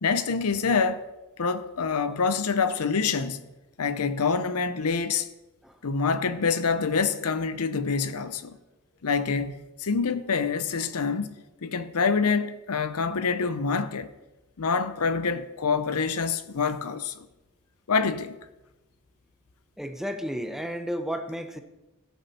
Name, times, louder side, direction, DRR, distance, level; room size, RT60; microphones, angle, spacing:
voice 1, 0.0-1.0 1.4-3.4 3.8-5.3 5.8-8.6 9.0-11.3 11.6-14.1 14.6-17.3 17.9-18.4, left 5 dB, 75° left, 0.7 m, -26 dB
voice 2, 19.8-21.6, equal, ahead, 0.7 m, -32 dB
16.5 x 6.8 x 4.3 m
head